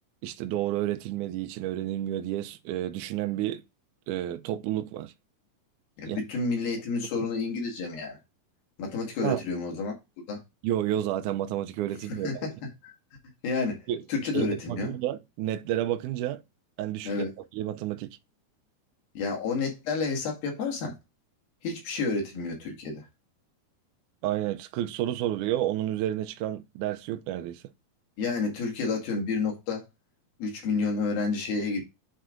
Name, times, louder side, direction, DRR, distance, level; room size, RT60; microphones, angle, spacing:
voice 1, 0.2-3.6 4.1-5.1 6.1-6.2 7.2-7.3 9.2-9.4 10.6-12.5 13.9-14.0 14.3-16.4 16.8-17.2 17.5-18.1 24.2-27.6, right 12 dB, 80° right, 1.8 m, -30 dB
voice 2, 6.0-8.2 8.8-9.9 10.3-10.4 12.1-12.9 13.4-14.9 17.0-17.4 19.2-20.9 21.6-23.1 28.2-29.9 30.4-31.8, left 4 dB, 75° left, 3.7 m, -30 dB
9.4 x 3.4 x 3.7 m
omnidirectional pair, 4.2 m